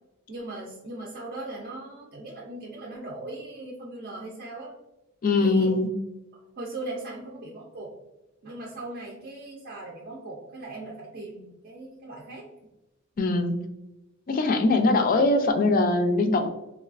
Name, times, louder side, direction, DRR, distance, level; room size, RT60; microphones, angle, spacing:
voice 1, 0.3-4.7 5.4-5.7 6.6-7.9 8.4-12.5, right 2 dB, 45° right, -3 dB, 0.5 m, -39 dB
voice 2, 5.2-5.9 13.2-13.6 14.3-16.5, left 2 dB, 40° left, 6 dB, 0.4 m, -22 dB
3.2 x 2.3 x 2.4 m, 0.98 s
head